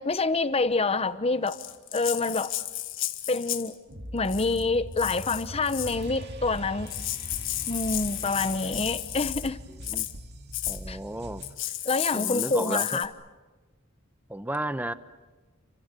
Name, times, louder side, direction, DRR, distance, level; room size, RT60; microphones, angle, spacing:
voice 1, 0.0-1.6 1.9-2.5 3.3-3.8 4.1-6.9 7.7-9.6 10.9-11.0 11.8-13.1, left 3 dB, 30° left, 1.0 m, -27 dB
Rattle (instrument), 1.5-3.7 4.2-4.6 5.0-6.0 6.6-6.7 6.9-9.5 9.8-10.1 10.5-10.8 11.4-13.1, left 14 dB, 65° left, 1.6 m, -33 dB
sound 1, 3.9-9.9, equal, 80° right, 5.2 m, -43 dB
sound 2, 5.8-11.5, equal, 55° right, 2.2 m, -42 dB
voice 2, 10.7-11.4 12.1-13.0 14.3-14.9, right 1 dB, 10° right, 0.9 m, -33 dB
29.0 x 26.0 x 6.9 m
head